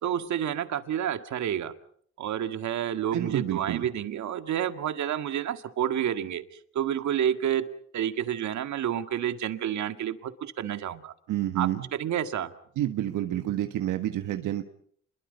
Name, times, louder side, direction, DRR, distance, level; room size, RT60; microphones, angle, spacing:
voice 1, 0.0-1.7 2.2-7.7 7.9-11.1 11.6-12.5, right 10 dB, 70° right, 9 dB, 1.9 m, -29 dB
voice 2, 3.1-3.9 11.3-11.8 12.8-14.6, right 13 dB, 85° right, 7 dB, 1.5 m, -29 dB
30.0 x 22.5 x 5.5 m, 0.62 s
cardioid pair, 90°, 30 cm